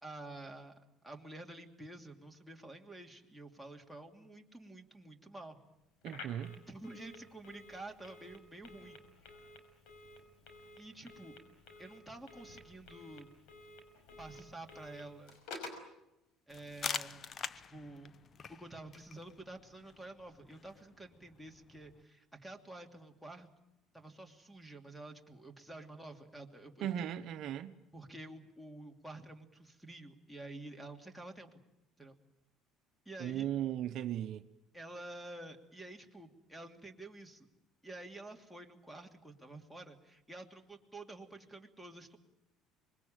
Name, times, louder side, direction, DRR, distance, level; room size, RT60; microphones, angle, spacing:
voice 1, 0.0-0.7 1.0-5.6 6.7-9.0 10.8-11.4 11.8-13.3 14.2-15.4 16.5-17.2 17.5-18.1 18.5-23.5 23.9-26.9 27.9-31.5 32.0-32.1 33.0-33.5 34.7-37.5 37.8-42.2, right 2 dB, ahead, 2.9 m, -49 dB
Telephone, 6.0-15.9, left 3 dB, 75° left, 5.4 m, -52 dB
voice 2, 6.0-6.5 26.8-27.7 33.2-34.4, right 11 dB, 60° right, 1.0 m, -37 dB
sound 1, 16.5-22.0, left 6 dB, 40° left, 0.9 m, -45 dB
25.0 x 21.5 x 9.1 m
supercardioid pair, 100°, 0 cm